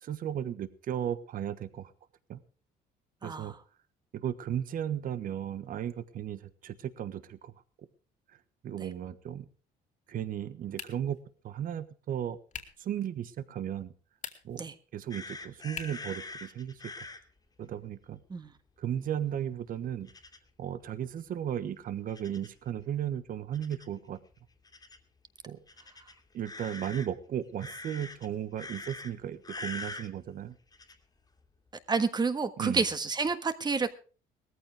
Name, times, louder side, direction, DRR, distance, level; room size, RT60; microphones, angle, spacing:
voice 1, 0.0-1.9 2.3-2.4 3.2-3.5 4.1-7.5 8.6-9.5 10.1-11.2 11.4-12.4 12.8-13.9 14.4-16.8 17.6-18.2 18.8-20.1 20.6-24.2 25.5-25.6 26.3-30.6 32.6-32.8, right 10 dB, 55° right, 13 dB, 1.3 m, -35 dB
voice 2, 3.2-3.6 14.6-14.7 18.3-18.5 31.9-33.9, right 4 dB, 25° right, 10 dB, 1.5 m, -29 dB
sound 1, 10.7-11.2 12.5-12.9 14.1-14.7 15.7-16.1, left 7 dB, 45° left, 2.5 m, -43 dB
sound 2, 15.1-17.2 20.1-20.4 22.1-22.6 23.5-23.9 24.6-25.0 25.7-27.1 27.6-28.3 28.6-29.1 29.4-30.1 30.7-30.9, left 2 dB, 25° left, 2.4 m, -43 dB
18.5 x 14.5 x 3.5 m, 0.37 s
cardioid pair, 110°, 17 cm